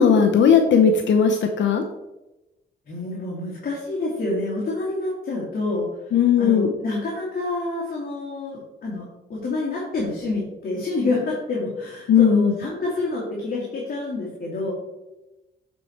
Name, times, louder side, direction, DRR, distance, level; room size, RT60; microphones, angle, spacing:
voice 1, 0.0-1.8 6.1-6.7 12.1-12.5, left 7 dB, 65° left, 5 dB, 0.8 m, -17 dB
voice 2, 2.9-5.9 6.4-9.0 9.3-14.7, left 2 dB, 50° left, -5 dB, 2.4 m, -27 dB
8.9 x 4.3 x 4.5 m, 1.0 s
cardioid pair, 110°, 20 cm